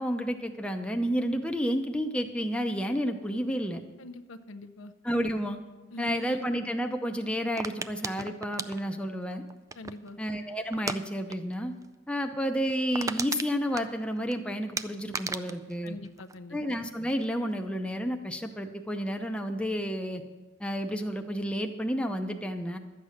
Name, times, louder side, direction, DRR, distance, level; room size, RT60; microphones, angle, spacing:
voice 1, 0.0-3.8 5.0-5.6 6.0-9.4 10.2-11.7 12.1-16.0 16.5-20.2 20.6-22.8, equal, 5° left, 4 dB, 0.7 m, -31 dB
voice 2, 4.0-4.9 5.9-6.4 9.8-10.2 15.8-16.6, left 1 dB, 75° left, 10 dB, 0.6 m, -43 dB
sound 1, 7.6-10.1 10.7-11.0 11.3-11.5 11.8-11.9 12.3-12.4 12.7-14.3 14.8-16.8 17.1-17.5, right 4 dB, 15° right, 0.3 m, -36 dB
12.0 x 8.3 x 6.4 m, 1.2 s
head